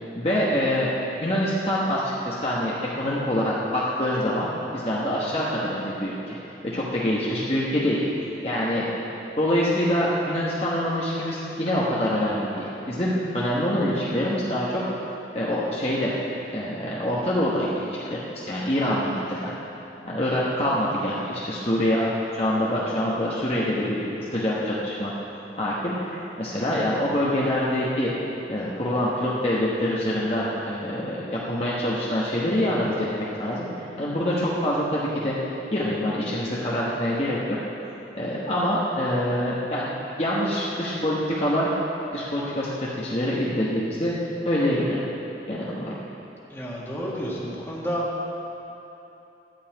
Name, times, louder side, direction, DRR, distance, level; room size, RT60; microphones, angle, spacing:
voice 1, 0.1-0.9 1.2-6.4 6.6-8.0 8.4-8.8 9.4-14.8 15.3-16.1 16.5-19.5 20.0-25.1 25.6-28.1 28.5-33.1 33.4-35.4 35.7-37.4 38.1-39.9 40.2-41.7 42.1-44.1 44.4-45.0 45.5-45.9, equal, 35° left, -6 dB, 1.1 m, -25 dB
voice 2, 46.5-48.0, equal, 15° left, -5 dB, 1.7 m, -30 dB
11.5 x 5.6 x 8.6 m, 3.0 s
head